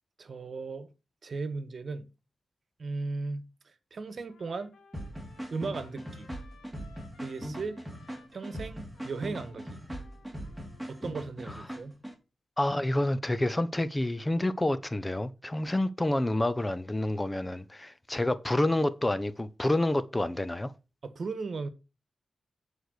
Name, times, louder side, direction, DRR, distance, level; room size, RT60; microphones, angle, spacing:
voice 1, 0.2-0.9 1.2-2.1 2.8-4.8 5.5-6.3 7.2-7.8 8.3-9.8 10.9-12.0 21.0-21.7, right 4 dB, 55° right, 1.4 m, -37 dB
Trumpet, 4.3-11.4, left 4 dB, 90° left, 2.6 m, -59 dB
sound 1, 4.9-12.1, equal, 5° right, 2.8 m, -40 dB
voice 2, 12.6-20.7, left 1 dB, 20° left, 0.7 m, -28 dB
9.1 x 4.8 x 6.5 m
cardioid pair, 75°, 0 cm